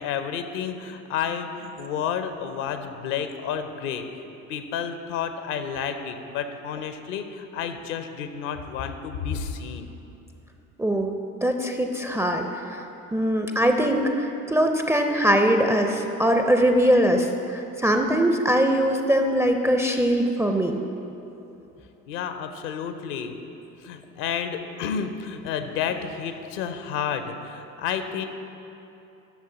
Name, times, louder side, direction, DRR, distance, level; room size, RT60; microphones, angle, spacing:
voice 1, 0.0-4.2 4.5-9.9 22.1-23.3 23.8-28.3, left 7 dB, 60° left, 9 dB, 0.7 m, -31 dB
voice 2, 10.8-11.1 11.4-12.8 13.1-20.8, equal, 5° right, 4 dB, 0.4 m, -22 dB
11.5 x 6.7 x 3.8 m, 2.9 s
figure-of-eight pair, 55°, 42 cm